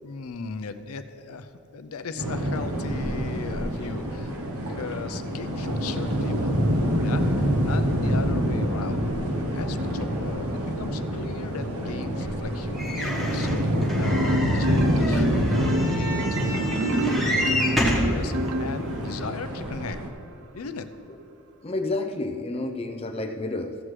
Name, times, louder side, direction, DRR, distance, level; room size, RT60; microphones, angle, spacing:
voice 1, 0.0-4.4 4.7-6.5 7.0-9.0 9.3-13.5 14.0-17.4 17.8-18.3 18.6-20.0 20.5-20.9, left 4 dB, 85° left, 10 dB, 0.5 m, -37 dB
sound 1, 2.2-20.1, equal, 90° right, 0.9 m, -26 dB
sound 2, 12.8-18.1 18.9-19.0 19.2-19.3, left 1 dB, ahead, 1.1 m, -29 dB
Marimba xylophone, 14.1-19.2, right 1 dB, 70° right, 0.4 m, -28 dB
voice 2, 21.6-23.8, left 2 dB, 25° left, 4 dB, 0.5 m, -30 dB
14.5 x 7.6 x 3.2 m, 2.7 s
head